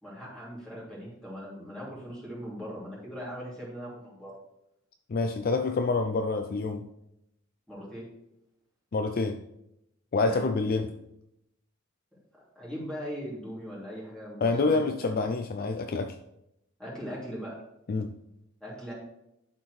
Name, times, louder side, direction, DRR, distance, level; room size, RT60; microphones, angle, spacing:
voice 1, 0.0-4.3 7.7-8.1 10.2-10.4 12.5-15.3 16.8-17.6 18.6-18.9, equal, 5° left, -7 dB, 2.8 m, -40 dB
voice 2, 5.1-6.9 8.9-9.4 10.1-11.0 14.4-16.2 17.9-18.1, left 3 dB, 45° left, 6 dB, 0.4 m, -27 dB
11.5 x 4.3 x 3.2 m, 0.84 s
head